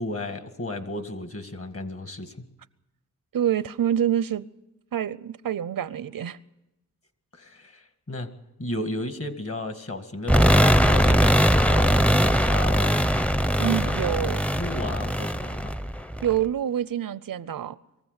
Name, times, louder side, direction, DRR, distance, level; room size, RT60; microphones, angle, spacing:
voice 1, 0.0-2.5 7.3-8.3 8.6-13.0 13.5-14.2 14.6-15.7, left 1 dB, 45° left, 2.0 m, -34 dB
voice 2, 3.3-4.5 4.9-6.4 13.6-14.4 16.2-17.8, right 10 dB, 80° right, 0.7 m, -26 dB
sound 1, 10.3-16.4, equal, 5° left, 0.6 m, -21 dB
22.5 x 15.0 x 8.1 m
cardioid pair, 60°, 33 cm